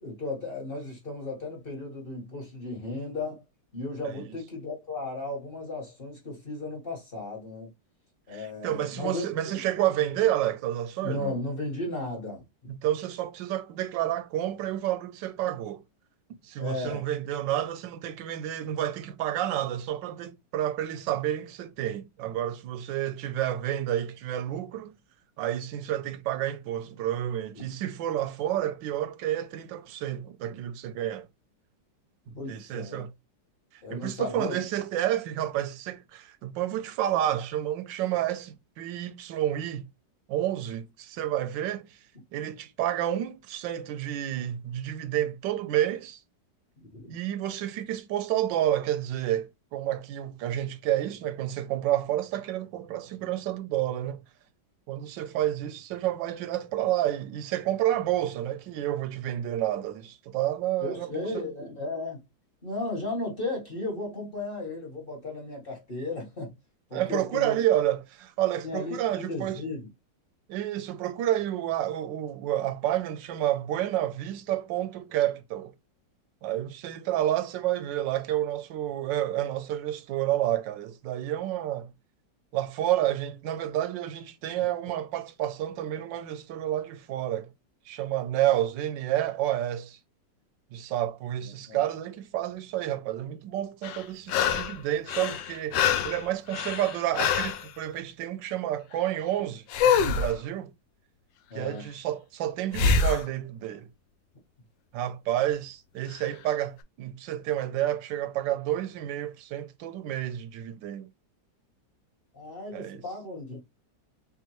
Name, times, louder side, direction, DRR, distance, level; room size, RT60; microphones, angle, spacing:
voice 1, 0.0-3.4 3.7-7.7 8.3-9.6 11.0-12.4 16.6-17.0 27.5-27.6 32.3-33.1 33.8-34.6 46.8-47.0 60.8-62.2 62.6-66.5 66.9-67.6 68.6-69.9 91.7-91.8 101.5-101.8 112.3-113.6, left 2 dB, 30° left, 1.5 m, -35 dB
voice 2, 8.3-11.4 12.7-15.8 16.4-24.9 25.4-31.3 32.3-33.1 33.7-39.9 40.3-42.0 42.3-46.2 47.1-54.2 54.9-61.5 66.9-69.6 70.5-75.7 76.4-81.9 82.5-87.5 87.9-90.0 90.7-100.7 101.5-103.9 104.9-111.1 112.7-113.0, right 12 dB, 80° right, 1.3 m, -30 dB
sound 1, 93.8-94.8 95.1-97.6 99.7-100.3 102.7-103.2 106.2-106.3, left 6 dB, 85° left, 1.3 m, -25 dB
3.6 x 3.5 x 3.0 m
omnidirectional pair, 2.0 m